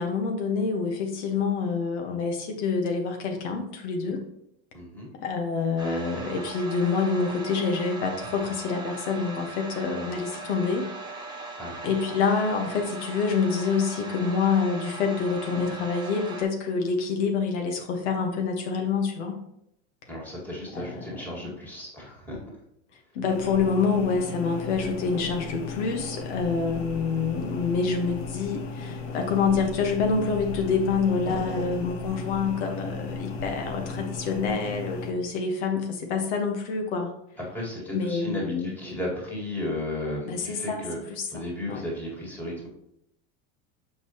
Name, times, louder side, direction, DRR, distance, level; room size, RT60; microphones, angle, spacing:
voice 1, 0.0-4.2 5.2-10.8 11.2-11.5 11.8-19.4 20.7-21.5 23.1-37.1 37.9-38.7 40.3-40.8 41.1-41.8, left 5 dB, 80° left, 3 dB, 1.4 m, -27 dB
voice 2, 4.7-5.1 11.6-11.8 20.1-22.4 37.5-41.0 41.3-42.7, left 1 dB, 5° left, -4 dB, 2.0 m, -34 dB
sound 1, 5.8-16.4, right 3 dB, 10° right, 1.3 m, -39 dB
sound 2, 23.3-35.1, left 3 dB, 60° left, 1.0 m, -36 dB
6.7 x 5.3 x 3.0 m, 0.77 s
supercardioid pair, 150°, 34 cm